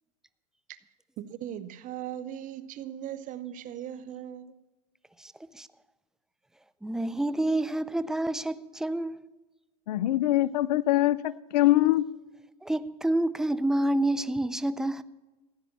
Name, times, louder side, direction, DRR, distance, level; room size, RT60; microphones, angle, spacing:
voice 1, 1.2-4.5, right 10 dB, 40° right, 0.9 m, -38 dB
voice 2, 5.2-5.7 6.8-9.2 12.6-15.0, right 1 dB, 5° right, 0.5 m, -28 dB
voice 3, 9.9-12.0, left 15 dB, 75° left, 0.5 m, -23 dB
15.0 x 10.0 x 7.3 m
hypercardioid pair, 110°, 21 cm